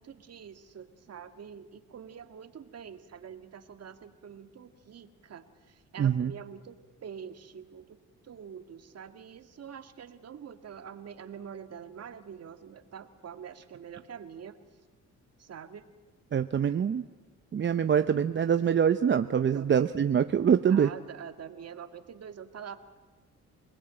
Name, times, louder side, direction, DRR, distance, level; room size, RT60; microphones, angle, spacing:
voice 1, 0.0-6.8 7.0-8.0 8.2-14.6 15.4-15.9 19.5-19.7 20.7-22.8, right 7 dB, 55° right, 8 dB, 2.0 m, -45 dB
voice 2, 6.0-6.3 16.3-17.0 17.5-20.9, right 8 dB, 40° right, 10 dB, 0.8 m, -24 dB
28.0 x 20.0 x 9.0 m, 1.3 s
cardioid pair, 90°, 30 cm